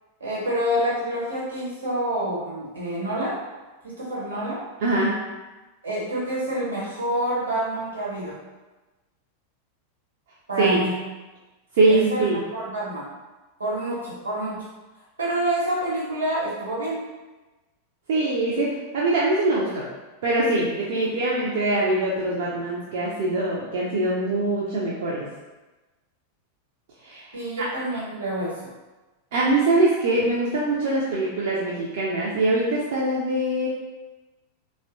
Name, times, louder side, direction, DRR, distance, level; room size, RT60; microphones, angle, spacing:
voice 1, 0.2-3.4 3.8-4.6 5.8-8.4 10.5-11.0 11.9-13.1 13.6-14.6 15.2-17.0 21.0-21.1 27.3-28.6, right 1 dB, 80° right, -7 dB, 1.0 m, -27 dB
voice 2, 4.8-5.1 10.6-10.8 11.7-12.4 18.1-19.9 20.2-25.3 27.0-27.3 27.6-27.7 29.3-33.7, right 2 dB, 55° right, -5 dB, 0.4 m, -23 dB
2.8 x 2.1 x 2.5 m, 1.2 s
figure-of-eight pair, 90°, 0 cm